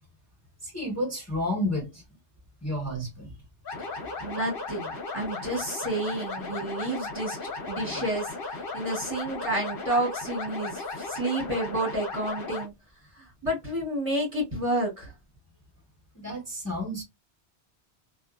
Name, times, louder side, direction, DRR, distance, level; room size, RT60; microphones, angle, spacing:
voice 1, 0.6-2.0 2.6-3.4 16.1-17.0, left 1 dB, 15° left, 1.0 m, -31 dB
sound 1, 3.6-12.6, left 3 dB, 55° left, 1.0 m, -36 dB
voice 2, 4.2-12.7 13.2-15.1, right 1 dB, 30° right, 1.2 m, -30 dB
2.5 x 2.2 x 2.3 m
omnidirectional pair, 1.2 m